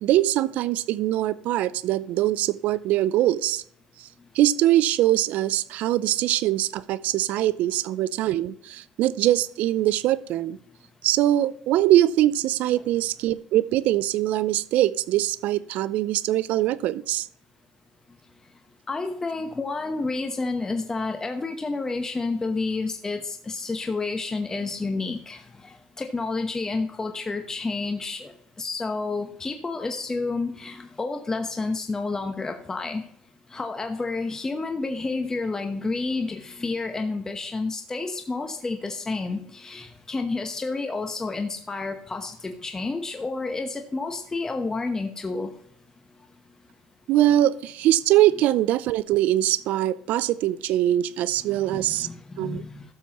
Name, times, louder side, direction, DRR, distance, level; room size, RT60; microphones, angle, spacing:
voice 1, 0.0-3.6 4.4-10.6 11.0-17.3 47.1-52.1 52.4-52.6, right 14 dB, 65° right, 0.4 m, -22 dB
voice 2, 18.9-28.3 28.6-33.0 33.5-45.5 51.4-52.8, left 3 dB, 20° left, 1.0 m, -30 dB
12.5 x 7.1 x 3.0 m
supercardioid pair, 85°, 3 cm